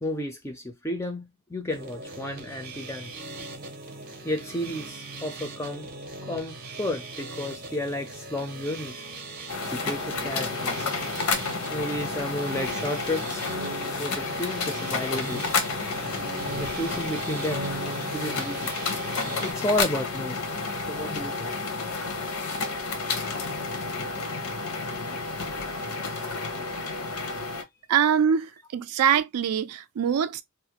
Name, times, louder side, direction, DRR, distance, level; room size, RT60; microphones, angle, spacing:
voice 1, 0.0-3.1 4.2-5.9 6.3-9.0 9.7-10.9 11.7-13.5 14.0-15.4 16.5-17.6 18.1-18.7 19.4-20.4 20.9-21.6 27.4-27.5, left 1 dB, 10° left, 0.3 m, -32 dB
sound 1, 1.7-19.5, right 2 dB, 45° right, 0.6 m, -39 dB
sound 2, 9.5-27.6, left 4 dB, 85° left, 0.7 m, -31 dB
voice 2, 27.9-30.4, right 8 dB, 90° right, 0.4 m, -23 dB
2.4 x 2.0 x 2.8 m
head